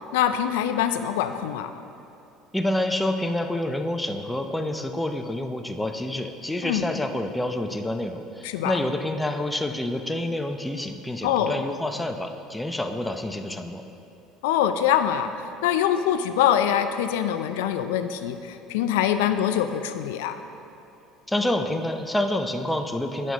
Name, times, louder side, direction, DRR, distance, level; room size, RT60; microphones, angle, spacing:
voice 1, 0.1-1.7 6.6-6.9 8.4-8.7 11.2-11.6 14.4-15.3 15.6-20.4, left 10 dB, 85° left, 9 dB, 0.3 m, -24 dB
voice 2, 2.5-13.8 21.3-23.3, left 1 dB, 10° left, 6 dB, 0.6 m, -28 dB
9.1 x 6.1 x 4.0 m, 2.7 s
supercardioid pair, 90°, 0 cm